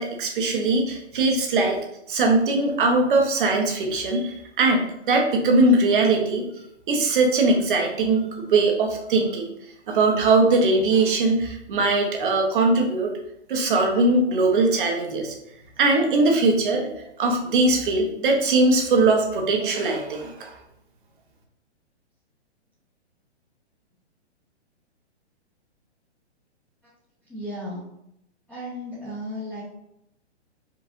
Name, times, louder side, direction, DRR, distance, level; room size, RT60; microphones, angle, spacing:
voice 1, 0.0-1.8 2.1-6.4 6.9-9.5 9.9-13.1 13.5-15.3 15.8-20.5, right 2 dB, 50° right, 2 dB, 1.0 m, -21 dB
voice 2, 27.3-27.8 28.5-29.6, equal, 5° left, -13 dB, 0.9 m, -34 dB
4.8 x 3.2 x 2.6 m, 0.78 s
hypercardioid pair, 155°, 34 cm